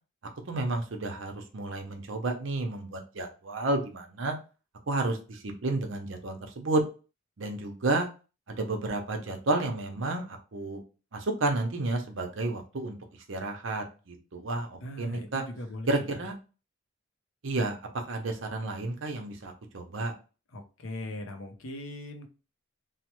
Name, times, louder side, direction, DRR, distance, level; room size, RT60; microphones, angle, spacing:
voice 1, 0.5-4.4 4.9-6.8 7.4-8.1 8.5-10.8 11.1-13.0 13.3-15.4 15.9-16.3 17.4-17.8 18.1-20.1, right 2 dB, 60° right, 4 dB, 0.7 m, -31 dB
voice 2, 14.8-16.2 20.5-22.3, left 1 dB, 70° left, 4 dB, 0.6 m, -40 dB
3.1 x 2.0 x 3.0 m, 0.33 s
head